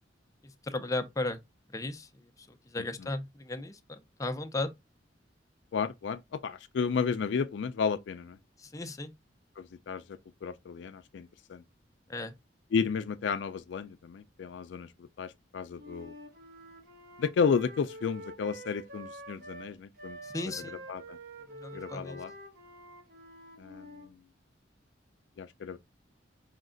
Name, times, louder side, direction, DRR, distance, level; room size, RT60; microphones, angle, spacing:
voice 1, 0.6-1.4 1.7-4.7 8.6-9.1 12.1-12.3 20.2-20.9 21.6-22.2, left 2 dB, 20° left, 0.5 m, -36 dB
voice 2, 5.7-8.4 9.6-11.6 12.7-16.1 17.2-20.2 20.4-20.5 20.9-21.2 21.7-22.3 23.6-24.2 25.4-25.8, left 6 dB, 70° left, 0.4 m, -33 dB
Wind instrument woodwind instrument, 15.7-24.1, right 1 dB, 60° right, 1.0 m, -47 dB
5.2 x 2.3 x 3.7 m
head